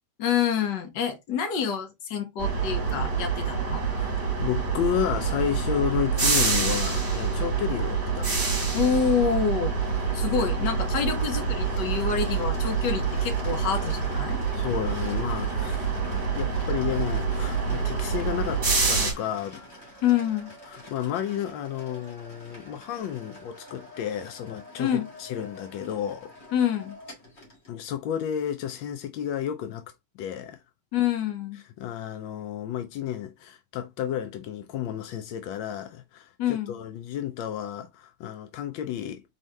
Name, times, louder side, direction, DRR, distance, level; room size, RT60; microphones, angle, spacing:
voice 1, 0.2-3.8 8.7-9.8 10.1-14.4 20.0-20.5 24.8-25.1 26.5-27.0 30.9-31.6 36.4-36.7, left 8 dB, 70° left, 1.5 m, -27 dB
sound 1, 2.4-19.1, right 5 dB, 35° right, 1.4 m, -26 dB
voice 2, 4.0-8.6 14.5-19.6 20.7-26.3 27.7-29.9 30.2-30.6 31.8-39.2, left 10 dB, 90° left, 1.4 m, -32 dB
sound 2, 8.2-27.7, left 1 dB, 35° left, 1.8 m, -48 dB
4.2 x 3.6 x 3.1 m
omnidirectional pair, 2.0 m